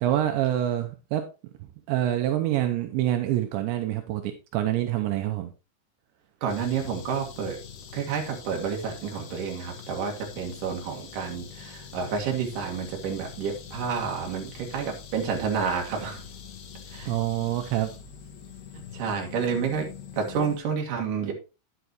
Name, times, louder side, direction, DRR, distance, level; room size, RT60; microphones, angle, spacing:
voice 1, 0.0-1.2 1.9-5.5 17.1-17.9, right 12 dB, 80° right, 6 dB, 2.9 m, -26 dB
voice 2, 6.4-7.6 7.9-16.2 16.9-17.1 18.9-19.9 20.1-21.3, right 6 dB, 55° right, 1 dB, 3.0 m, -29 dB
sound 1, 6.5-20.6, left 7 dB, 70° left, 3.3 m, -44 dB
10.0 x 8.2 x 3.0 m, 0.30 s
omnidirectional pair, 5.3 m